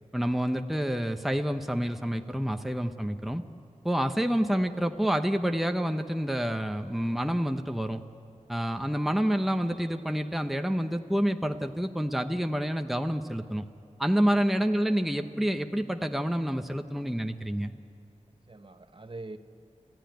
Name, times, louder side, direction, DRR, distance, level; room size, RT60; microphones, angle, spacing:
voice 1, 0.1-3.4 3.8-8.0 8.5-13.7 14.0-17.7, equal, ahead, 6 dB, 0.9 m, -28 dB
voice 2, 14.3-14.8 18.5-19.4, right 2 dB, 45° right, 7 dB, 1.2 m, -45 dB
26.0 x 15.5 x 9.3 m, 2.6 s
cardioid pair, 45°, 13 cm